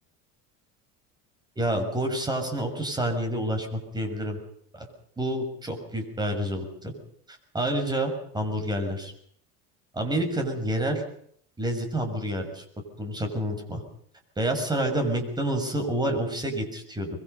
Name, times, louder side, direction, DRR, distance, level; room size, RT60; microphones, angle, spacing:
voice 1, 1.6-4.4 4.7-4.9 5.2-6.9 7.3-9.1 9.9-11.0 11.6-12.6 13.0-13.8 14.4-17.1, right 1 dB, 10° right, 5 dB, 6.4 m, -28 dB
25.5 x 22.0 x 5.6 m, 0.65 s
supercardioid pair, 130°, 34 cm